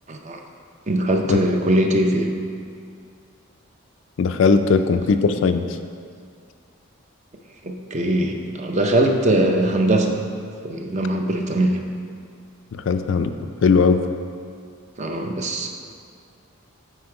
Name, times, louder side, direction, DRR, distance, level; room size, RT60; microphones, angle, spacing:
voice 1, 0.1-0.4 0.9-2.3 7.6-10.2 10.6-11.8 15.0-15.7, right 1 dB, 30° right, 3 dB, 0.5 m, -21 dB
voice 2, 4.2-5.7 12.7-13.3 13.6-14.0, left 5 dB, 60° left, 9 dB, 0.3 m, -18 dB
7.9 x 4.4 x 4.8 m, 2.3 s
head